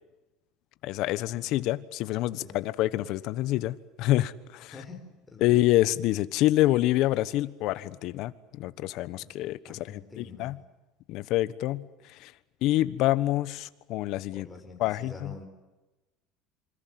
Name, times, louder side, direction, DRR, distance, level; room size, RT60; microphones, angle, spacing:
voice 1, 0.8-4.7 5.4-10.6 11.1-11.9 12.2-12.3 12.6-14.5 14.8-15.3, left 16 dB, 55° left, 16 dB, 1.3 m, -27 dB
voice 2, 5.3-5.6 9.1-9.3 9.6-10.5 14.3-15.4, left 3 dB, 10° left, 3 dB, 5.1 m, -46 dB
27.0 x 25.5 x 7.8 m, 1.1 s
cardioid pair, 145°, 0 cm